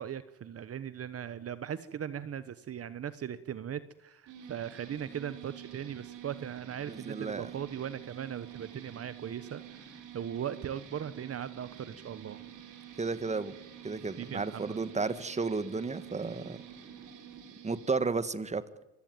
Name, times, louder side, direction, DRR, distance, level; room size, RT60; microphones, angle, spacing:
voice 1, 0.0-12.4 14.2-14.8, right 9 dB, 50° right, 14 dB, 1.1 m, -39 dB
sound 1, 4.3-18.0, right 10 dB, 85° right, 4.4 m, -48 dB
voice 2, 6.9-7.5 13.0-13.5 13.8-16.6 17.6-18.6, right 4 dB, 25° right, 14 dB, 1.6 m, -33 dB
25.0 x 16.0 x 9.3 m, 0.97 s
cardioid pair, 90°, 30 cm